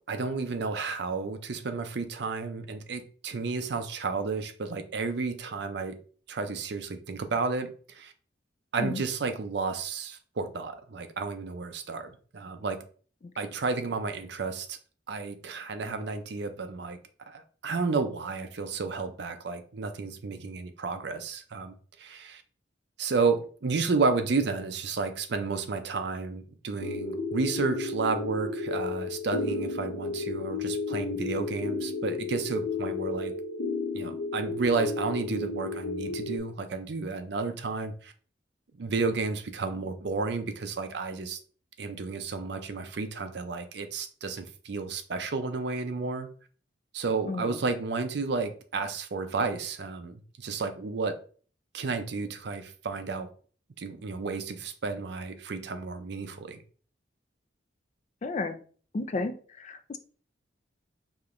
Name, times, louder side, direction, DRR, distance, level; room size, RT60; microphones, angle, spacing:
voice 1, 0.1-6.0 6.3-8.1 8.7-12.8 13.4-14.8 15.1-17.0 17.3-22.4 23.0-33.3 33.9-38.1 38.8-41.4 41.8-46.3 46.9-51.2 51.7-53.3 53.8-56.6, right 4 dB, 60° right, 0.5 m, -32 dB
sound 1, 26.8-36.4, left 3 dB, 70° left, 0.7 m, -32 dB
voice 2, 47.2-47.6 58.2-58.6 58.9-60.0, left 3 dB, 35° left, 0.3 m, -33 dB
5.0 x 2.9 x 2.5 m
head